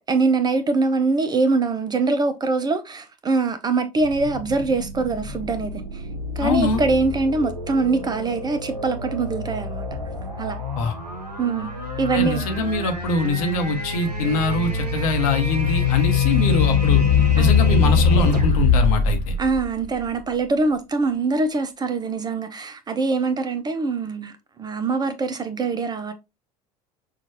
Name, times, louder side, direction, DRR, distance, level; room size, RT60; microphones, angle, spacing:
voice 1, 0.1-6.0 6.4-9.9 10.4-10.6 11.4-11.7 12.0-12.4 17.4-17.6 19.4-26.1, right 3 dB, 20° right, 0.5 m, -23 dB
sound 1, 4.0-20.2, left 5 dB, 90° right, 0.8 m, -23 dB
voice 2, 6.4-6.8 10.8-10.9 12.1-17.0 17.4-19.3, left 3 dB, 60° left, 1.0 m, -23 dB
5.7 x 2.4 x 2.9 m
figure-of-eight pair, 65°, 20 cm